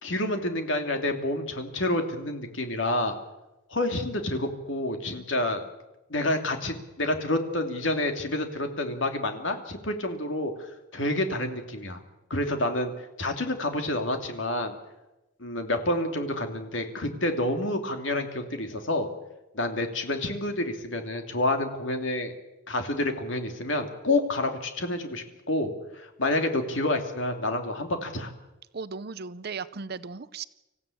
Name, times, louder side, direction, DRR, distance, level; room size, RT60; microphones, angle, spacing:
voice 1, 0.0-3.2 3.7-5.6 6.1-12.0 12.3-12.9 13.2-14.8 15.4-19.1 19.5-22.3 22.7-28.3, left 1 dB, 65° left, 5 dB, 2.7 m, -28 dB
voice 2, 28.7-30.4, right 5 dB, 50° right, 15 dB, 0.7 m, -36 dB
26.0 x 15.5 x 8.5 m, 1.0 s
head